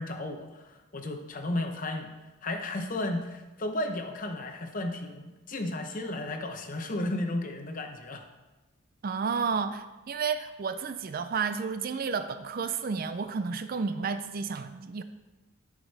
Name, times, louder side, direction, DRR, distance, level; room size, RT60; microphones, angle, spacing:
voice 1, 0.0-2.1 2.4-8.2, left 1 dB, 35° left, 5 dB, 0.7 m, -34 dB
voice 2, 9.0-15.0, right 5 dB, 40° right, 10 dB, 0.3 m, -31 dB
11.0 x 5.0 x 4.1 m, 1.1 s
head